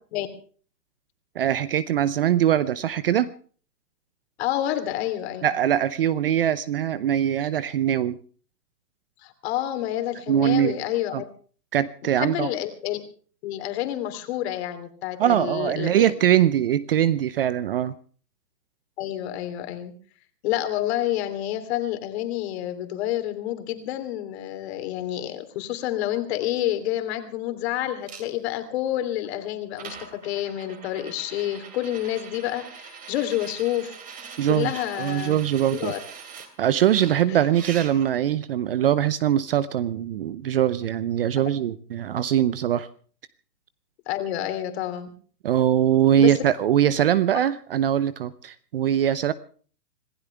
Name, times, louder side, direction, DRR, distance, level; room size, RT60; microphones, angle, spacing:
voice 1, 1.3-3.3 5.4-8.2 10.3-10.8 11.1-11.2 11.7-12.5 15.2-17.9 34.4-34.7 35.0-35.9 36.6-42.9 45.4-49.3, right 10 dB, 35° right, 16 dB, 0.7 m, -22 dB
voice 2, 4.4-5.5 9.2-11.2 12.2-13.0 13.4-16.1 19.0-19.9 20.4-34.0 34.5-35.4 35.7-36.0 37.3-37.4 44.1-45.1 46.2-46.3, left 13 dB, 40° left, 9 dB, 3.1 m, -28 dB
sound 1, 28.1-28.2 29.2-29.3 29.8-36.5 36.9-38.2 38.9-39.0, right 6 dB, 15° right, 2.8 m, -42 dB
26.0 x 15.5 x 3.4 m, 0.43 s
hypercardioid pair, 145°, 50 cm